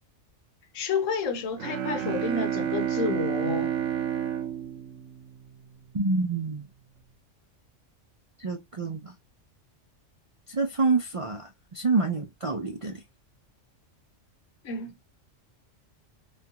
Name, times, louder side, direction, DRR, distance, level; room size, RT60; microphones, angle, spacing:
voice 1, 0.7-3.7 14.6-14.9, left 5 dB, 85° left, 1.1 m, -30 dB
Bowed string instrument, 1.6-5.9, right 10 dB, 75° right, 1.0 m, -30 dB
voice 2, 5.9-6.6 8.4-9.1 10.5-11.5 11.7-12.9, right 3 dB, 50° right, 0.3 m, -27 dB
3.7 x 2.4 x 2.7 m
omnidirectional pair, 1.3 m